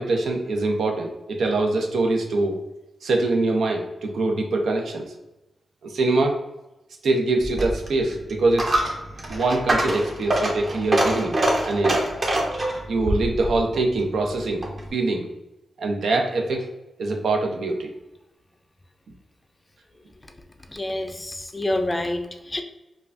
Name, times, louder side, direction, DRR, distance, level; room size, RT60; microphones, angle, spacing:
voice 1, 0.0-2.5 3.0-5.1 5.8-6.4 7.0-8.8 9.3-11.4 11.6-12.0 12.9-14.6 14.9-15.3 15.8-16.7 17.0-17.9, right 2 dB, 90° right, 2 dB, 0.7 m, -23 dB
Coin (dropping), 7.4-14.9, right 1 dB, 35° right, 0.8 m, -25 dB
voice 2, 20.7-22.6, left 1 dB, 20° left, 6 dB, 0.4 m, -27 dB
5.4 x 2.3 x 2.5 m, 0.97 s
wide cardioid pair, 140°, 0 cm